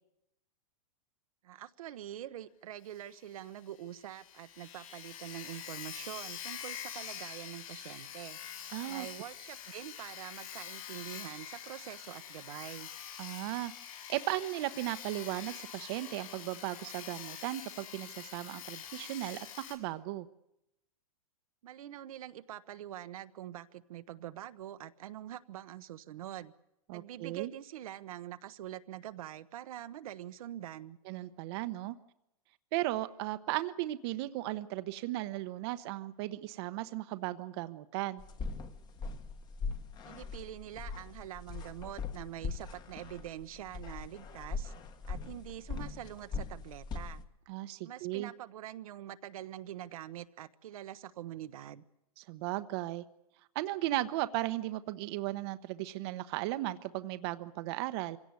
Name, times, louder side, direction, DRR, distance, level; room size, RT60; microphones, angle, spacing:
voice 1, 1.4-8.4 8.9-12.9 21.6-26.5 26.9-31.0 40.0-44.7 45.1-47.2 47.8-51.8, right 12 dB, 65° right, 10 dB, 1.1 m, -45 dB
Sawing, 2.9-3.0 3.3-3.4 3.8-3.9 4.0-19.8, left 9 dB, 60° left, 7.5 m, -45 dB
voice 2, 8.7-9.1 13.2-13.7 14.1-20.3 26.9-27.5 31.1-31.9 32.7-38.2 47.5-48.3 52.2-53.0 53.5-58.2, right 16 dB, 40° right, 11 dB, 1.0 m, -36 dB
sound 1, 38.2-47.2, left 4 dB, 20° left, 1.5 m, -41 dB
25.0 x 17.0 x 9.7 m, 0.84 s
hypercardioid pair, 145°, 20 cm